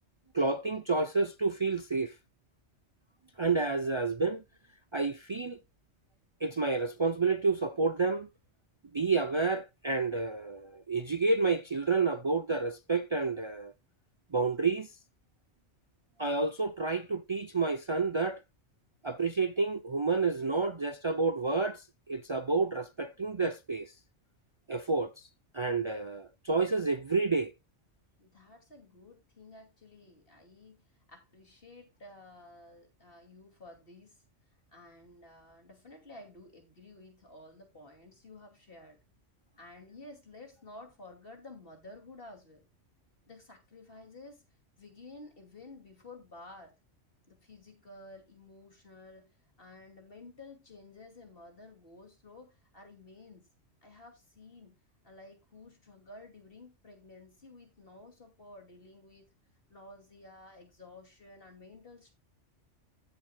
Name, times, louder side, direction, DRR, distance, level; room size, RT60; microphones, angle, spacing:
voice 1, 0.3-2.1 3.4-4.4 4.9-5.6 6.4-8.3 8.9-13.7 14.3-14.9 16.2-18.4 19.0-23.9 24.7-25.1 25.5-27.5, right 4 dB, 45° right, 0.4 m, -29 dB
voice 2, 28.2-34.2 34.7-39.0 39.6-42.6 43.3-44.4 44.8-46.7 47.3-53.5 53.8-54.8 55.0-59.3 59.7-62.1, left 2 dB, 50° left, 2.7 m, -52 dB
15.5 x 7.2 x 2.2 m
omnidirectional pair, 1.3 m